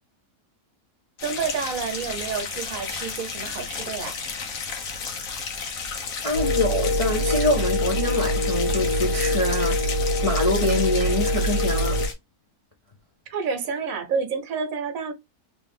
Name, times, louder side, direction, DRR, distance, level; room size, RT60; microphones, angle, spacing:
sound 1, 1.2-12.1, left 5 dB, 65° left, 1.3 m, -33 dB
voice 1, 1.2-4.2 13.3-15.1, right 5 dB, 65° right, 1.2 m, -29 dB
voice 2, 6.2-9.9 10.2-12.0, left 2 dB, 35° left, 0.5 m, -25 dB
sound 2, 6.3-12.1, equal, 80° left, 1.6 m, -24 dB
3.2 x 2.8 x 3.4 m
omnidirectional pair, 1.6 m